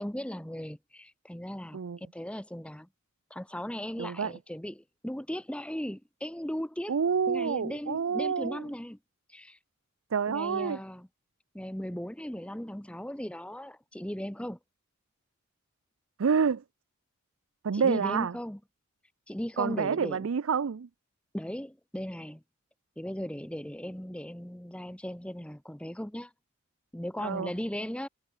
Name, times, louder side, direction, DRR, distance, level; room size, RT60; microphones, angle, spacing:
voice 1, 0.0-2.9 3.3-6.9 7.3-9.0 9.3-9.6 10.3-11.1 11.5-14.6 17.7-18.6 19.3-20.3 21.3-22.4 23.0-26.3 26.9-28.1, equal, 5° left, 0.8 m, -37 dB
voice 2, 4.0-4.3 6.9-8.6 10.1-10.8 16.2-16.6 17.6-18.3 19.6-20.9 27.2-27.5, right 6 dB, 80° right, 0.5 m, -28 dB
head